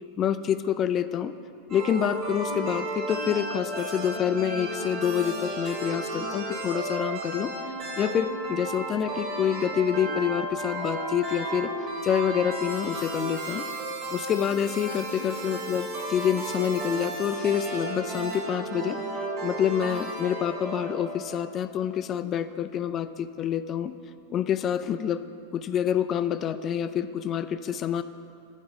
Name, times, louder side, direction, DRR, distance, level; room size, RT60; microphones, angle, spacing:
voice 1, 0.2-1.3 1.7-7.5 8.0-13.7 14.1-19.0 19.4-23.9 24.3-25.2 25.5-28.0, left 9 dB, 30° left, 12 dB, 0.3 m, -27 dB
sound 1, 1.7-21.6, right 2 dB, 40° right, 2.0 m, -33 dB
9.0 x 5.0 x 5.2 m, 2.5 s
figure-of-eight pair, 90°, 0 cm